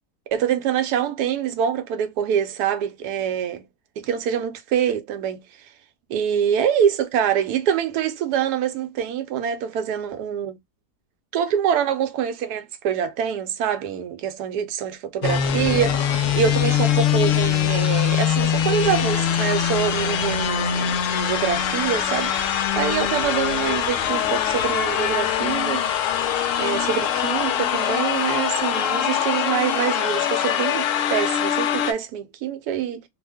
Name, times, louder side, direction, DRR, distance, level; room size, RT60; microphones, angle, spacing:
voice 1, 0.3-3.7 4.0-5.4 6.1-10.6 11.3-25.8 26.6-33.0, right 8 dB, 80° right, 1.1 m, -25 dB
sound 1, 15.2-31.9, left 9 dB, 70° left, 0.8 m, -23 dB
2.8 x 2.1 x 3.4 m
omnidirectional pair, 1.7 m